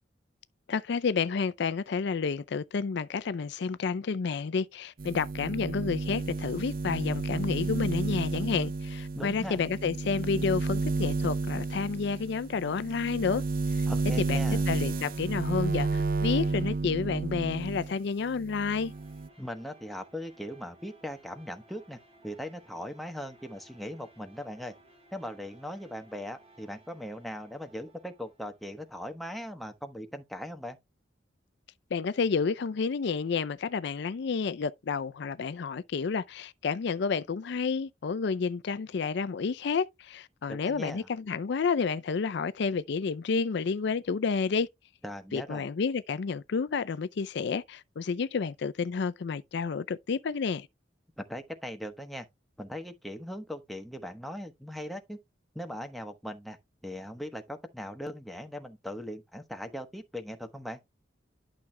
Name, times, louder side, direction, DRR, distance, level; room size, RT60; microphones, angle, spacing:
voice 1, 0.7-13.4 13.7-13.9 14.2-18.9 31.9-44.7 45.3-50.7, left 5 dB, 65° left, 0.4 m, -30 dB
sound 1, 5.0-17.9 18.3-19.3, right 3 dB, 50° right, 0.5 m, -31 dB
voice 2, 9.1-9.6 13.9-14.7 19.4-24.7 25.1-30.8 40.5-41.1 45.0-45.7 51.2-52.2 52.6-55.2 55.5-56.6 56.8-60.8, equal, ahead, 1.0 m, -39 dB
sound 2, 18.8-29.7, right 1 dB, 30° right, 2.1 m, -59 dB
11.5 x 6.0 x 2.2 m
head